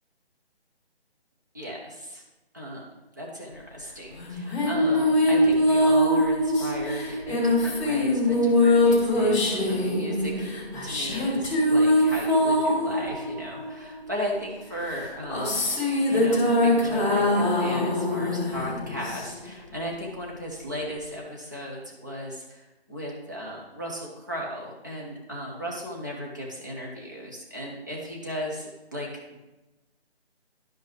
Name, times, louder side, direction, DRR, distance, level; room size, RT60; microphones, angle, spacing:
voice 1, 1.5-2.2 2.5-2.8 3.2-9.4 9.7-10.5 10.8-15.7 16.1-29.4, equal, 20° right, -3 dB, 0.7 m, -36 dB
sound 1, 4.2-14.1 14.9-19.6, left 1 dB, 30° left, 2.6 m, -23 dB
11.5 x 5.4 x 3.3 m, 1.0 s
hypercardioid pair, 175°, 32 cm